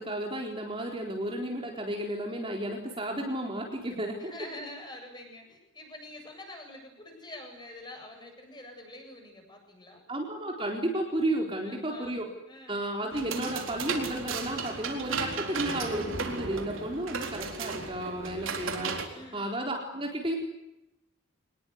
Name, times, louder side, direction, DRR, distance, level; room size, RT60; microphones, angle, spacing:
voice 1, 0.0-4.3 10.1-12.3 12.7-20.4, right 1 dB, 25° right, 1 dB, 4.2 m, -33 dB
voice 2, 4.2-10.0 11.6-12.2 12.5-12.9 19.1-19.5, left 1 dB, 20° left, 3 dB, 7.9 m, -46 dB
sound 1, 13.1-19.1, right 4 dB, 65° right, 4.1 m, -35 dB
25.5 x 20.5 x 9.6 m, 0.89 s
head